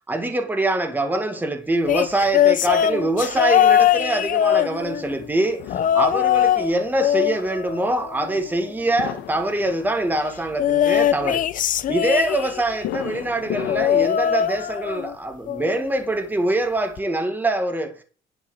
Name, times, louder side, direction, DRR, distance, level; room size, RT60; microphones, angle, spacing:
voice 1, 0.1-11.5 11.9-18.0, right 2 dB, 10° right, 1.7 m, -24 dB
sound 1, 1.9-5.2 5.7-6.7 7.0-8.5 10.6-12.8 13.7-15.1 15.5-15.8 17.0-17.1, left 10 dB, 50° left, 0.7 m, -21 dB
sound 2, 5.0-14.1, left 11 dB, 75° left, 1.4 m, -36 dB
11.0 x 4.6 x 7.5 m
cardioid pair, 110°, 17 cm